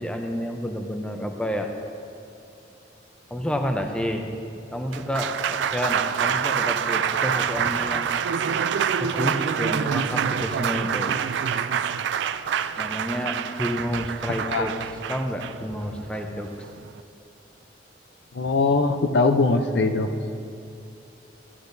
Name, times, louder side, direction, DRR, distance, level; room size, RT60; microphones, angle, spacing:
voice 1, 0.0-1.7 3.3-4.3 4.7-8.1 9.0-11.2 12.8-16.5, equal, 5° left, 3 dB, 0.6 m, -29 dB
Applause, 4.7-17.0, right 7 dB, 75° right, 0.3 m, -26 dB
voice 2, 18.3-20.1, left 3 dB, 65° left, 7 dB, 0.5 m, -21 dB
13.5 x 9.9 x 2.6 m, 2.6 s
head